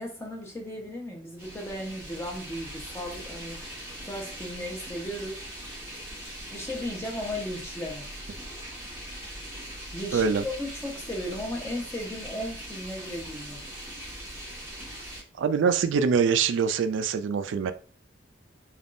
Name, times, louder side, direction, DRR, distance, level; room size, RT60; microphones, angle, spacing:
voice 1, 0.0-3.6 4.0-5.4 6.5-8.0 9.9-13.6, left 1 dB, 15° left, 0 dB, 0.8 m, -35 dB
sound 1, 1.4-15.2, right 1 dB, 10° right, 1.3 m, -41 dB
voice 2, 10.1-10.4 15.4-17.7, right 6 dB, 85° right, 10 dB, 0.3 m, -24 dB
3.4 x 2.3 x 2.5 m, 0.39 s
head